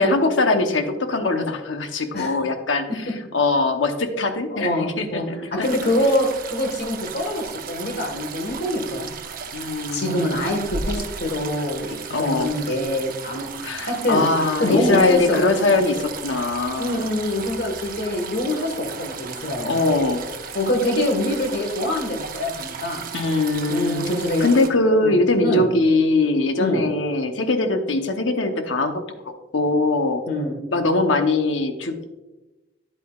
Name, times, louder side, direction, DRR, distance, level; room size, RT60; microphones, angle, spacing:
voice 1, 0.0-3.0 3.3-5.7 9.5-10.4 12.1-12.5 13.6-17.1 19.6-20.2 23.1-24.0 24.4-29.0 29.5-30.2 30.7-32.0, left 2 dB, 85° left, 6 dB, 0.9 m, -21 dB
voice 2, 4.5-9.1 9.9-13.5 13.8-14.3 14.6-15.8 16.8-19.7 20.5-23.0 23.7-24.5 25.0-25.1 25.4-25.6 26.6-26.9 30.3-30.6, left 1 dB, 60° left, 4 dB, 1.5 m, -24 dB
sound 1, 5.6-24.7, right 5 dB, 50° right, 0.8 m, -35 dB
9.9 x 8.4 x 2.4 m, 1.1 s
head